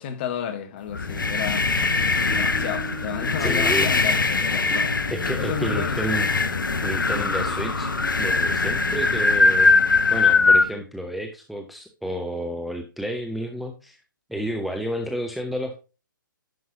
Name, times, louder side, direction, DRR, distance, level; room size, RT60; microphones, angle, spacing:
voice 1, 0.0-1.7 2.3-5.0 5.4-6.8, left 8 dB, 30° left, 1.1 m, -32 dB
sound 1, 0.9-10.7, left 3 dB, 70° left, 1.0 m, -21 dB
sound 2, 0.9-10.8, equal, 20° right, 2.9 m, -39 dB
voice 2, 3.4-3.9 5.1-6.4 6.8-7.9 8.2-14.0 14.3-15.8, equal, ahead, 0.5 m, -31 dB
10.5 x 5.4 x 2.7 m
figure-of-eight pair, 130°, 11 cm